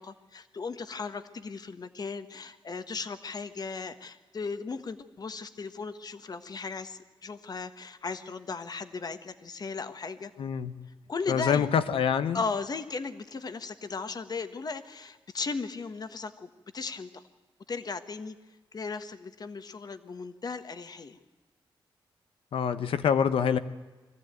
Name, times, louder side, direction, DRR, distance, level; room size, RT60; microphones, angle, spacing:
voice 1, 0.0-10.3 11.1-11.7 12.3-17.2 17.7-18.3 18.7-21.2, left 4 dB, 45° left, 10 dB, 1.4 m, -36 dB
voice 2, 10.4-10.8 11.3-12.4 22.5-23.6, left 7 dB, 90° left, 12 dB, 1.0 m, -26 dB
23.0 x 14.5 x 9.1 m, 1.2 s
cardioid pair, 90°, 9 cm